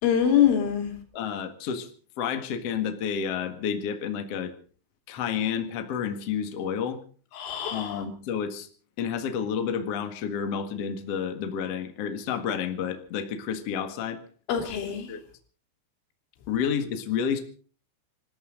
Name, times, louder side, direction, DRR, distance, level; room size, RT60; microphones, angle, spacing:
voice 1, 0.0-1.0 7.4-8.0 14.5-15.1, left 9 dB, 85° left, 5.4 m, -24 dB
voice 2, 1.1-1.9 2.2-4.5 5.1-7.0 7.7-8.7 9.0-14.2 15.1-15.2 16.5-17.4, left 7 dB, 55° left, 1.8 m, -30 dB
27.0 x 14.0 x 3.9 m
omnidirectional pair, 5.4 m